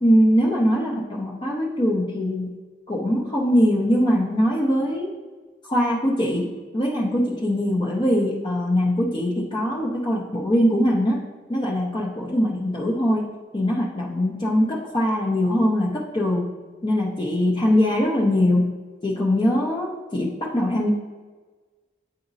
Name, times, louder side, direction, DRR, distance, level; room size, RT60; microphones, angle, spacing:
voice 1, 0.0-2.5 2.9-5.1 5.7-11.2 11.5-13.3 13.5-16.5 16.8-18.7 19.0-20.9, equal, 25° left, -2 dB, 0.7 m, -22 dB
9.0 x 3.9 x 2.7 m, 1.3 s
head